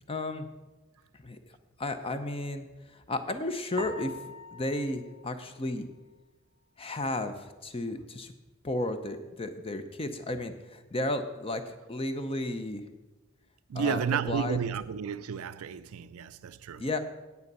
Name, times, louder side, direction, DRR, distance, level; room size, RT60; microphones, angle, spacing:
voice 1, 0.1-0.5 1.2-1.4 1.8-2.7 2.9-4.1 4.5-5.9 6.8-8.3 8.6-12.8 13.7-14.6 16.8-17.0, left 2 dB, 25° left, 0.6 m, -33 dB
sound 1, 3.8-6.2, left 1 dB, 25° right, 0.6 m, -44 dB
voice 2, 13.7-16.8, right 7 dB, 80° right, 0.4 m, -32 dB
9.5 x 8.2 x 5.4 m
head